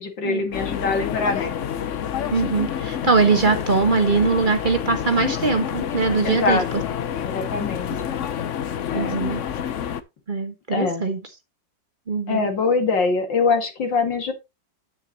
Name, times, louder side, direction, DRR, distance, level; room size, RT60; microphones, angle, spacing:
voice 1, 0.0-1.6 6.2-6.9 7.2-7.9 8.9-9.2 10.7-11.0 12.3-14.3, left 4 dB, 80° left, 5 dB, 2.7 m, -23 dB
sound 1, 0.5-10.0, left 9 dB, 55° left, 0.9 m, -28 dB
voice 2, 2.3-6.6 7.9-8.0 8.9-9.4 10.3-11.2 12.1-12.5, right 4 dB, 30° right, 6 dB, 1.4 m, -21 dB
9.6 x 9.3 x 2.9 m, 0.24 s
omnidirectional pair, 2.0 m